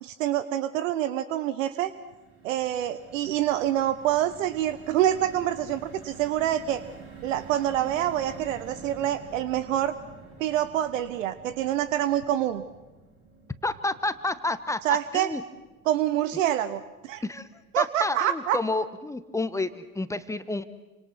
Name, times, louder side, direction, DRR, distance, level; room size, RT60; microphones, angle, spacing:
voice 1, 0.0-1.9 2.4-6.8 7.2-9.9 10.4-12.6 14.8-15.3 15.9-17.2 17.7-18.6, right 12 dB, 60° right, 14 dB, 1.2 m, -26 dB
sound 1, 1.7-18.0 18.4-18.5 18.8-19.0, right 4 dB, 30° right, 7.3 m, -48 dB
voice 2, 13.6-14.8 15.1-15.4 17.2-17.5 17.8-20.6, left 2 dB, 5° left, 12 dB, 1.3 m, -29 dB
29.0 x 26.0 x 6.1 m, 1.1 s
figure-of-eight pair, 85°, 43 cm